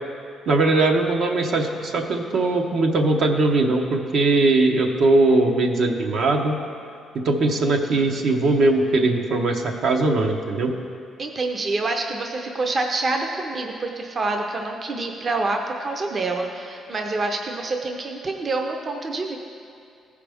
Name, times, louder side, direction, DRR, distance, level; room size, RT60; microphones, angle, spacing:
voice 1, 0.5-6.6 7.2-10.7, right 2 dB, 65° right, 2 dB, 0.8 m, -20 dB
voice 2, 11.2-19.4, right 3 dB, 40° right, 3 dB, 0.7 m, -27 dB
14.5 x 4.9 x 3.5 m, 2.4 s
cardioid pair, 90°, 0 cm